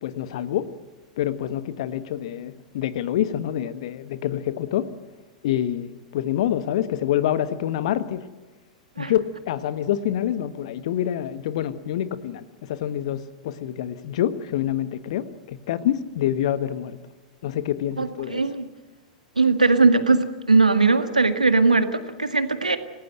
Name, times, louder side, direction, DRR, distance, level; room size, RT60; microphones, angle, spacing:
voice 1, 0.0-0.7 1.2-4.9 5.4-8.3 9.0-17.0 17.4-18.4, left 11 dB, 55° left, 1.4 m, -26 dB
voice 2, 18.0-18.7 19.4-22.8, right 3 dB, 85° right, 1.8 m, -19 dB
27.5 x 18.0 x 7.7 m
figure-of-eight pair, 95°, 4 cm